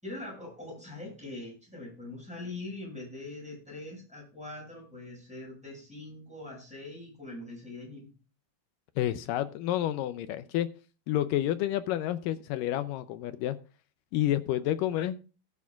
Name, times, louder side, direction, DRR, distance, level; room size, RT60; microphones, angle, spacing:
voice 1, 0.0-8.1, left 2 dB, ahead, -2 dB, 6.5 m, -42 dB
voice 2, 9.0-10.7 11.1-13.6 14.1-15.2, left 12 dB, 80° left, 12 dB, 2.0 m, -29 dB
18.0 x 8.5 x 2.4 m, 0.34 s
omnidirectional pair, 4.4 m